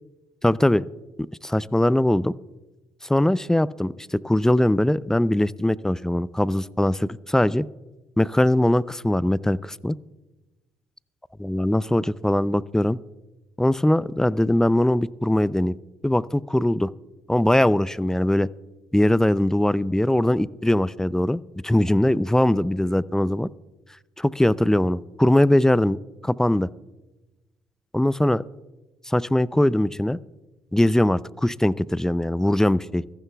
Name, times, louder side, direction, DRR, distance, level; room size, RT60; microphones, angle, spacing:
voice 1, 0.4-0.8 1.4-2.3 3.0-7.7 8.2-10.0 11.4-13.0 13.6-15.8 16.0-16.9 17.3-18.5 18.9-23.5 24.2-26.0 26.2-26.7 27.9-28.4 29.1-30.2 30.7-33.0, left 1 dB, 5° left, 19 dB, 0.4 m, -21 dB
24.0 x 14.5 x 2.3 m, 1.1 s
hypercardioid pair, 55°, 11 cm